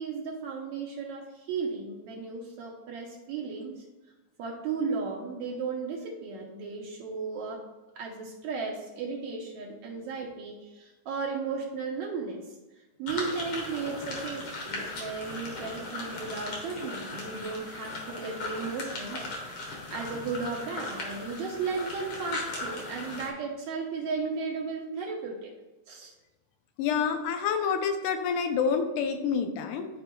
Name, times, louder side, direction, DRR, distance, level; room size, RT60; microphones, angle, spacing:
voice 1, 0.0-3.8 4.4-7.6 8.0-12.6 13.0-19.3 19.9-25.5 25.9-26.1, right 4 dB, 75° right, -2 dB, 2.0 m, -35 dB
sound 1, 13.1-23.3, left 2 dB, 55° left, 1.9 m, -38 dB
voice 2, 26.8-29.9, left 6 dB, 85° left, 6 dB, 2.2 m, -28 dB
12.0 x 4.5 x 2.3 m, 1.1 s
omnidirectional pair, 3.4 m